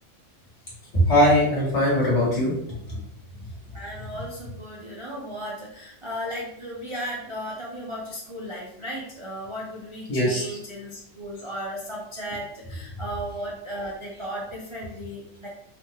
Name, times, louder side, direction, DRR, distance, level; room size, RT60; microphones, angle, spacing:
voice 1, 0.9-2.5 2.9-3.0 10.1-10.6, equal, 50° left, -6 dB, 1.9 m, -20 dB
voice 2, 3.7-15.5, equal, 30° right, -5 dB, 0.5 m, -35 dB
4.1 x 3.0 x 3.0 m, 0.73 s
omnidirectional pair, 1.5 m